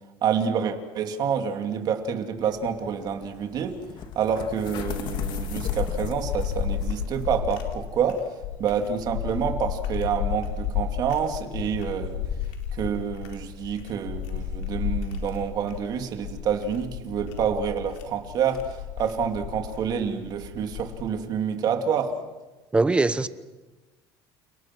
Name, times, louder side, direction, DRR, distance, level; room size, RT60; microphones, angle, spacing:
voice 1, 0.2-3.8 4.1-8.2 8.6-12.2 12.8-22.1, right 7 dB, 45° right, 5 dB, 2.7 m, -28 dB
sound 1, 2.4-7.4, left 7 dB, 50° left, 2.8 m, -40 dB
sound 2, 4.4-21.2, left 8 dB, 85° left, 4.4 m, -32 dB
voice 2, 22.7-23.3, right 3 dB, 10° right, 14 dB, 0.9 m, -21 dB
29.5 x 29.5 x 6.2 m, 1.2 s
cardioid pair, 155°, 10 cm